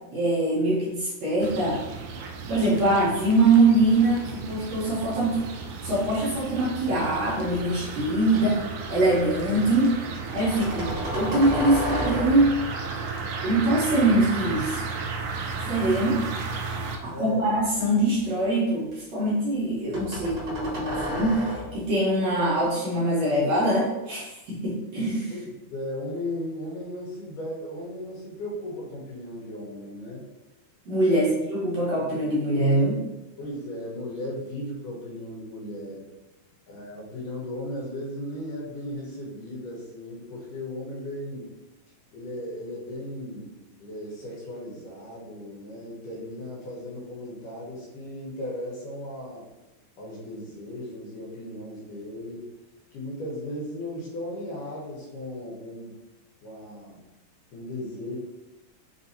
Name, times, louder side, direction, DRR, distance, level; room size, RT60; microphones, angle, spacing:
voice 1, 0.1-1.8 2.5-5.3 5.8-8.6 8.9-9.9 10.3-12.6 13.4-14.8 15.6-16.2 17.0-21.4 21.7-25.3 30.9-33.0, right 2 dB, 70° right, -6 dB, 1.9 m, -23 dB
sound 1, 1.4-17.0, right 4 dB, 85° right, 1.6 m, -34 dB
sound 2, 6.4-7.6 8.0-8.6 10.3-12.6 15.1-16.7 17.2-18.5 19.9-21.9, equal, 45° right, 1.4 m, -34 dB
voice 2, 17.1-17.5 25.3-30.3 31.0-31.4 33.4-36.1 36.7-41.5 42.1-49.5 50.0-52.5 52.9-56.0 56.4-57.0 57.5-58.2, left 1 dB, 75° left, -4 dB, 2.5 m, -36 dB
5.5 x 2.6 x 2.7 m, 1.0 s
omnidirectional pair, 3.8 m